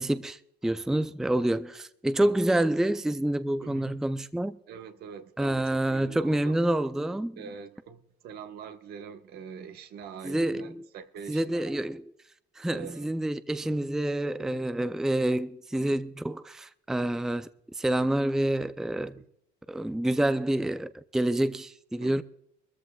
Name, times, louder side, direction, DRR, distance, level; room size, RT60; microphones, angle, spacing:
voice 1, 0.0-4.6 5.4-7.4 10.2-10.9 11.3-12.1 12.6-17.5 17.7-19.2 19.7-22.2, right 1 dB, 5° right, 0.4 m, -28 dB
voice 2, 3.6-4.0 4.7-6.6 7.4-11.8 12.7-13.1 13.6-13.7 14.4-14.7 15.7-16.0 18.0-18.2 19.2-19.3 22.0-22.2, right 7 dB, 70° right, 1.2 m, -44 dB
24.0 x 14.0 x 2.3 m
cardioid pair, 110°, 17 cm